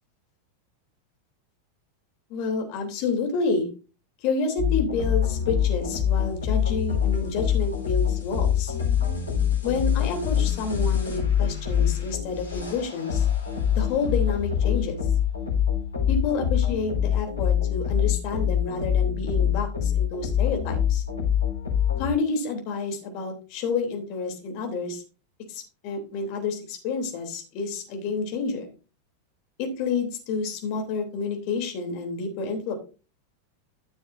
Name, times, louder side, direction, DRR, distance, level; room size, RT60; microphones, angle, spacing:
voice 1, 2.3-3.7 4.2-8.7 9.6-13.3 13.7-15.0 16.1-21.0 22.0-25.0 25.5-28.7 29.6-32.7, left 4 dB, 45° left, 3 dB, 3.2 m, -29 dB
sound 1, 4.6-22.1, left 9 dB, 75° left, 3.9 m, -25 dB
14.0 x 6.9 x 2.6 m, 0.34 s
figure-of-eight pair, 90°, 0 cm